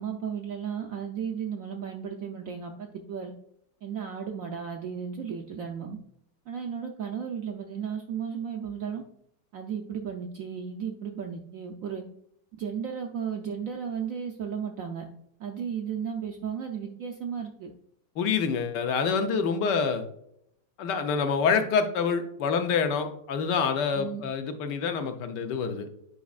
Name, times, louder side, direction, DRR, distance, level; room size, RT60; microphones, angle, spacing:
voice 1, 0.0-3.3 3.8-6.0 6.5-9.0 9.5-12.0 12.6-15.1 15.4-17.7 23.9-24.2, right 7 dB, 70° right, 3 dB, 0.8 m, -34 dB
voice 2, 18.2-20.0 20.8-25.9, left 5 dB, 75° left, 7 dB, 1.3 m, -27 dB
8.3 x 5.1 x 2.4 m, 0.72 s
omnidirectional pair, 2.0 m